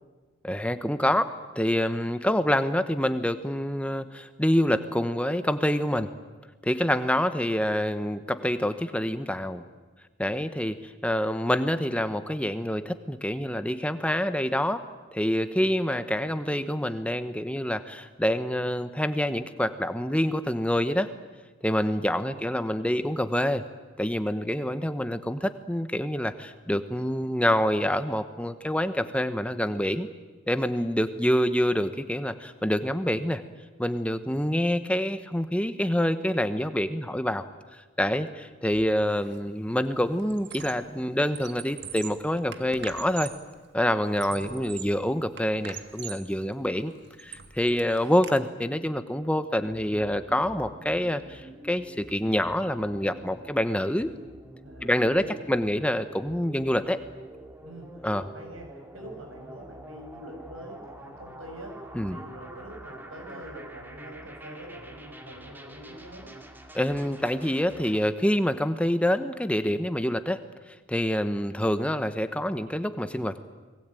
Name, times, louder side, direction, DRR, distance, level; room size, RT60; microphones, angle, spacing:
voice 1, 0.4-6.1 6.6-9.6 10.2-14.8 15.1-21.1 21.6-23.6 24.0-30.1 30.5-33.4 33.8-37.4 38.0-43.3 43.7-46.9 47.2-54.1 54.8-57.0 58.0-58.2 61.9-62.2 66.7-70.4 70.9-73.4, equal, 5° left, 10 dB, 1.0 m, -26 dB
voice 2, 22.1-22.7 44.3-44.7 54.6-55.6 57.6-66.3, right 1 dB, 70° right, 3 dB, 7.4 m, -44 dB
Squeak, 39.1-39.4 39.7-40.9 41.2-43.5 44.0-45.0 45.4-46.3 46.8-48.4, right 8 dB, 55° right, 1.7 m, -42 dB
sound 1, 49.7-68.0, right 1 dB, 10° right, 2.2 m, -46 dB
29.0 x 21.0 x 9.1 m, 1.3 s
head